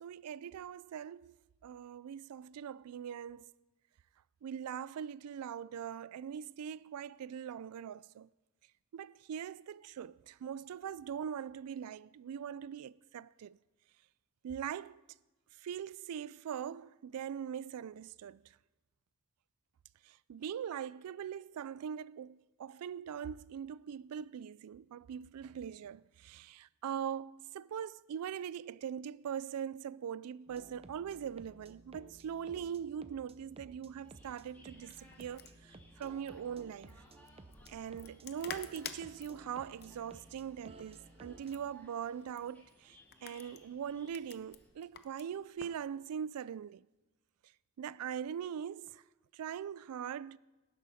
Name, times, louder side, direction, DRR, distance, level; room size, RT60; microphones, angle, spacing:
voice 1, 0.0-1.3 1.6-3.5 4.4-8.3 8.9-13.6 14.4-15.0 15.6-18.4 20.1-37.0 37.7-46.8 47.8-49.0 49.3-50.4, right 8 dB, 85° right, 0.3 m, -42 dB
sound 1, 30.5-41.7, right 2 dB, 25° right, 0.6 m, -56 dB
sound 2, 33.9-44.7, left 1 dB, 10° left, 2.3 m, -63 dB
sound 3, 34.7-45.8, left 8 dB, 45° left, 0.7 m, -52 dB
18.0 x 10.5 x 4.2 m
head